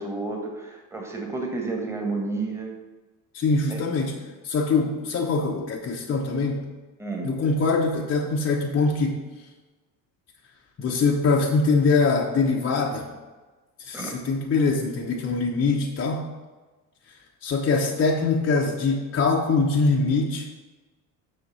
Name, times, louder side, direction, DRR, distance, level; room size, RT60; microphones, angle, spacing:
voice 1, 0.0-2.7 3.7-3.8 7.0-7.4 13.9-14.2, right 3 dB, 5° right, 1 dB, 1.5 m, -31 dB
voice 2, 3.3-4.2 4.4-6.6 7.2-9.2 10.8-13.1 13.8-16.3 17.4-20.5, left 4 dB, 25° left, -1 dB, 0.9 m, -23 dB
7.1 x 6.4 x 4.1 m, 1.2 s
figure-of-eight pair, 60°, 50 cm